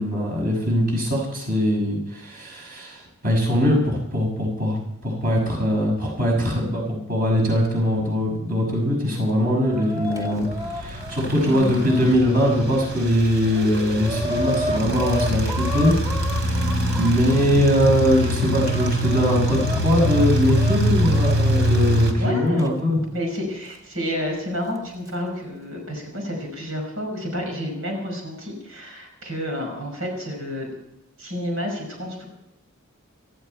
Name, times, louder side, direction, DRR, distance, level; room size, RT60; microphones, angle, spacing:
voice 1, 0.0-15.9 16.4-16.5 17.0-23.0, equal, 45° right, -1 dB, 6.3 m, -21 dB
Chicken rooster, 9.0-12.5 13.1-13.2 13.4-17.5 18.1-21.3 22.6-22.7 23.7-23.8 24.8-25.1, equal, 20° right, 2.2 m, -32 dB
sound 1, 10.2-22.1, equal, 65° right, 3.2 m, -24 dB
voice 2, 22.2-22.6 22.9-30.7 31.2-32.3, equal, 85° right, 1 dB, 5.6 m, -30 dB
18.5 x 15.0 x 4.5 m, 0.87 s
head